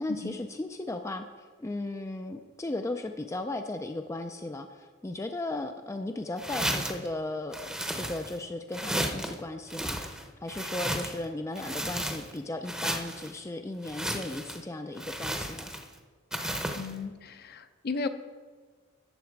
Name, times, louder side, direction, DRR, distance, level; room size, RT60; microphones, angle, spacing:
voice 1, 0.0-15.7, left 2 dB, 15° left, 6 dB, 0.4 m, -36 dB
sound 1, 6.4-7.1 7.5-8.4 8.7-9.3 9.7-11.2 11.5-12.4 12.6-13.3 13.8-14.6 15.0-15.9 16.3-16.9, right 1 dB, 5° right, 0.7 m, -33 dB
voice 2, 16.7-18.1, left 4 dB, 50° left, 9 dB, 0.6 m, -35 dB
12.0 x 7.3 x 4.6 m, 1.5 s
head